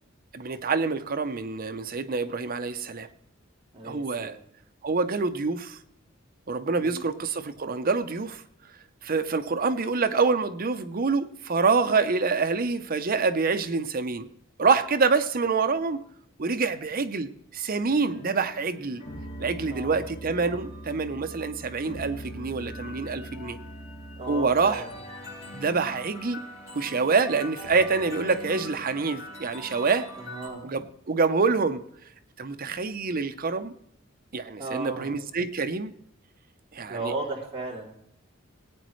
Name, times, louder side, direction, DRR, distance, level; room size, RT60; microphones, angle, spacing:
voice 1, 0.3-3.1 3.8-4.4 4.8-5.8 6.5-8.4 9.0-14.3 14.6-16.0 16.4-19.0 19.4-23.6 24.3-24.8 25.5-26.4 26.7-30.1 30.6-31.8 32.4-33.7 34.3-35.9 36.7-37.1, right 4 dB, 45° right, 9 dB, 0.7 m, -26 dB
voice 2, 3.7-4.4 6.7-7.0 19.7-20.0 24.2-24.9 30.2-30.6 34.6-35.1 36.9-37.9, right 3 dB, 30° right, -4 dB, 3.0 m, -35 dB
sound 1, 17.8-30.5, equal, 35° left, 6.1 m, -41 dB
20.0 x 9.1 x 3.1 m, 0.73 s
head